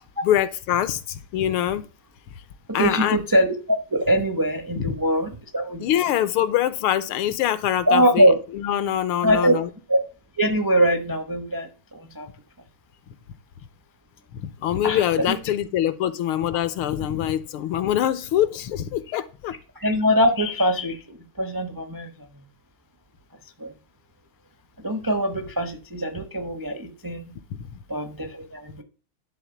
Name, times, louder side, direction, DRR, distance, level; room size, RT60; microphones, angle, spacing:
voice 1, 0.2-1.9 2.7-3.2 4.8-4.9 5.8-8.3 8.6-9.7 14.4-19.5 27.6-27.7, left 11 dB, 80° left, 1.6 m, -24 dB
voice 2, 2.7-5.9 7.9-8.4 9.2-9.6 9.9-10.0 10.4-12.3 14.8-15.4 19.1-19.2 19.8-22.4 23.6-23.7 24.8-27.4 27.9-28.8, equal, 30° right, 0.3 m, -23 dB
11.5 x 3.9 x 7.0 m
omnidirectional pair, 2.4 m